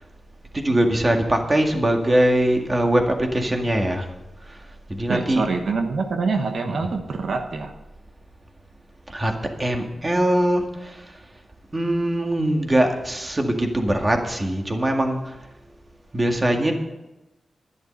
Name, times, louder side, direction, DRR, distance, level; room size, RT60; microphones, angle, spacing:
voice 1, 0.5-4.1 4.9-5.4 6.7-6.9 9.1-11.0 11.7-15.3 16.1-16.7, right 1 dB, 30° right, 3 dB, 2.0 m, -22 dB
voice 2, 5.1-7.7, right 4 dB, 80° right, 5 dB, 1.2 m, -25 dB
11.5 x 11.0 x 5.4 m, 1.0 s
wide cardioid pair, 95°, 0 cm